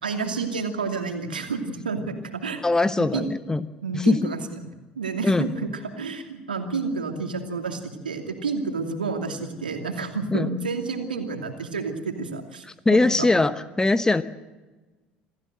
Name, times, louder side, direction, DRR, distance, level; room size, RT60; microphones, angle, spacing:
voice 1, 0.0-2.6 3.1-3.3 3.8-4.4 5.0-5.7 6.0-12.6 12.9-13.3, right 4 dB, 80° right, 5 dB, 2.6 m, -30 dB
voice 2, 2.6-3.7 3.9-4.3 5.2-5.5 10.3-10.5 12.8-14.2, left 2 dB, 15° left, 14 dB, 1.1 m, -21 dB
27.5 x 16.0 x 7.9 m, 1.2 s
figure-of-eight pair, 65°, 5 cm